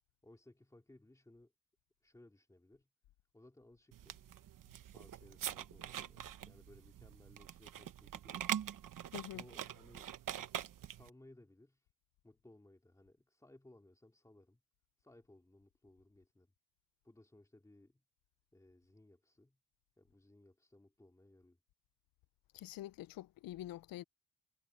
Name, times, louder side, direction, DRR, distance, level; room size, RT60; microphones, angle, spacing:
voice 1, 0.2-1.5 2.0-2.9 3.3-4.3 4.9-8.6 9.3-10.1 10.8-11.9 12.2-14.6 15.0-16.5 17.0-18.0 18.5-19.6 20.0-21.6, left 1 dB, 10° left, 2.5 m, -62 dB
sound 1, 3.9-11.1, right 10 dB, 70° right, 1.1 m, -44 dB
voice 2, 9.1-9.4 22.5-24.0, left 14 dB, 90° left, 0.5 m, -46 dB
cardioid pair, 125°, 33 cm